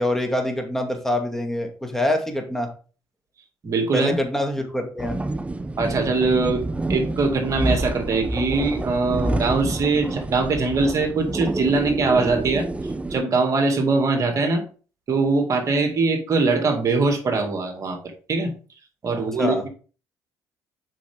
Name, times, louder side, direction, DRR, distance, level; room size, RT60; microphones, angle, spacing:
voice 1, 0.0-2.7 3.9-5.2 19.4-19.6, left 1 dB, 5° left, 4 dB, 2.2 m, -25 dB
voice 2, 3.6-4.2 5.8-6.6 6.9-12.7 13.1-14.6 15.1-18.0 18.3-18.5 19.0-19.7, right 3 dB, 45° right, 5 dB, 2.2 m, -22 dB
sound 1, 5.0-13.2, right 2 dB, 15° right, 0.6 m, -28 dB
7.5 x 5.7 x 3.6 m, 0.38 s
supercardioid pair, 70°, 7 cm